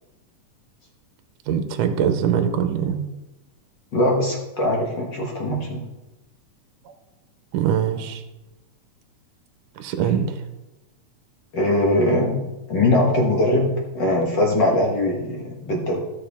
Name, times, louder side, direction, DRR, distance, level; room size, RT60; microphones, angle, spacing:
voice 1, 1.5-3.0 7.5-8.2 9.8-10.4, right 8 dB, 80° right, 8 dB, 2.3 m, -22 dB
voice 2, 3.9-5.8 11.5-16.0, left 1 dB, 50° left, -1 dB, 1.5 m, -21 dB
15.0 x 7.2 x 3.5 m, 1.0 s
omnidirectional pair, 3.6 m